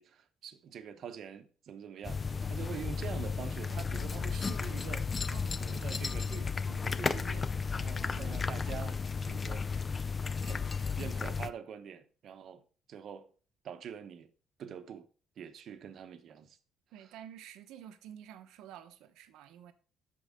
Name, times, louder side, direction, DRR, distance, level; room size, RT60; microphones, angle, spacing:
voice 1, 0.0-5.1 5.5-9.7 10.4-13.3 13.6-14.3 14.6-15.1 15.4-16.6 17.0-17.2, right 8 dB, 45° right, 0.8 m, -45 dB
sound 1, 2.0-11.5, left 5 dB, 20° left, 0.3 m, -34 dB
voice 2, 5.3-5.8 8.0-8.6 16.9-19.7, right 10 dB, 85° right, 0.9 m, -50 dB
13.0 x 4.7 x 3.6 m
cardioid pair, 175°, 0 cm